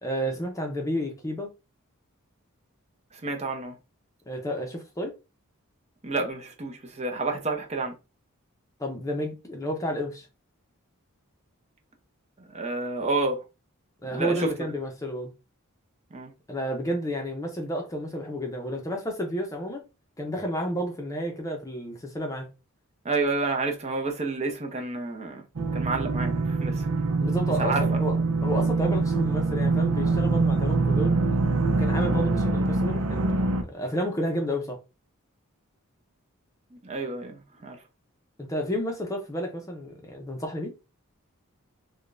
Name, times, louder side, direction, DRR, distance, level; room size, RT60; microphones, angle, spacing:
voice 1, 0.0-1.5 4.3-5.2 8.8-10.3 14.0-15.3 16.5-19.9 20.2-22.5 27.2-28.1 28.4-31.1 31.8-34.8 38.4-40.7, equal, 15° left, 0.7 m, -31 dB
voice 2, 3.1-3.8 6.0-8.0 12.4-13.4 14.1-14.5 16.1-16.3 23.0-25.4 25.7-27.1 27.6-27.8 32.1-32.3 36.7-37.8, right 3 dB, 30° right, 0.7 m, -30 dB
sound 1, 25.6-33.6, right 3 dB, 85° right, 0.7 m, -24 dB
4.9 x 2.3 x 2.5 m
head